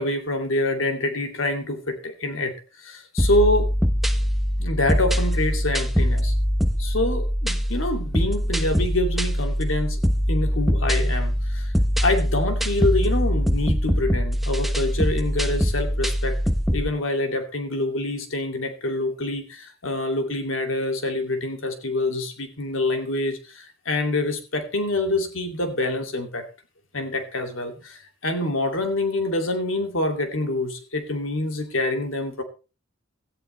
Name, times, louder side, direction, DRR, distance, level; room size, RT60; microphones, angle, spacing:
voice 1, 0.0-3.7 4.6-6.3 6.8-10.0 10.3-11.7 12.0-16.4 16.7-26.5 26.9-32.4, left 2 dB, 80° left, 5 dB, 2.6 m, -26 dB
sound 1, 3.2-16.9, equal, ahead, 0.8 m, -23 dB
17.0 x 13.5 x 3.2 m, 0.32 s
head